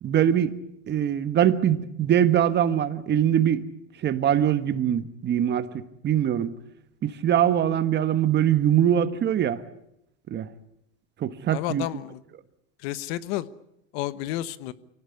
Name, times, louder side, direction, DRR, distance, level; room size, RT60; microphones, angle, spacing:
voice 1, 0.0-0.6 0.9-3.6 4.0-6.5 7.0-9.6 10.3-10.5 11.2-11.9, right 10 dB, 30° right, 12 dB, 1.4 m, -22 dB
voice 2, 11.5-12.2 12.8-13.5 13.9-14.7, left 15 dB, 60° left, 15 dB, 1.3 m, -31 dB
24.5 x 18.0 x 9.7 m, 0.81 s
supercardioid pair, 125°, 36 cm